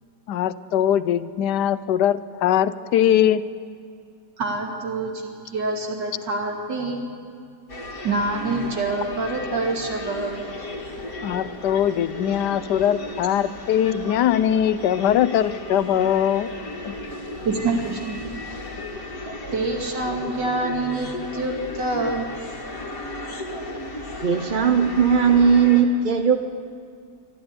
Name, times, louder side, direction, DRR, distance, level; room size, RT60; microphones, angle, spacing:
voice 1, 0.3-3.4 11.2-16.5 16.8-17.0, left 10 dB, 70° left, 15 dB, 1.2 m, -21 dB
voice 2, 4.4-7.1 8.0-10.5 17.4-18.2 19.5-22.3, right 2 dB, 70° right, 1 dB, 3.0 m, -26 dB
sound 1, 7.7-25.8, left 2 dB, 50° left, 2.4 m, -35 dB
voice 3, 24.2-26.4, right 6 dB, 50° right, 7 dB, 0.5 m, -18 dB
25.0 x 12.5 x 9.7 m, 2.2 s
omnidirectional pair, 2.0 m